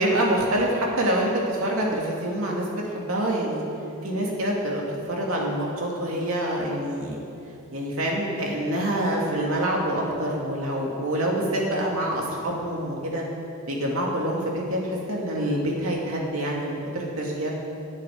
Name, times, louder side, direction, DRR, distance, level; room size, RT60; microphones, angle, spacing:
voice 1, 0.0-3.6 4.0-7.2 7.7-13.2 13.7-17.5, right 1 dB, 75° right, -2 dB, 2.6 m, -26 dB
9.1 x 9.1 x 9.5 m, 2.7 s
head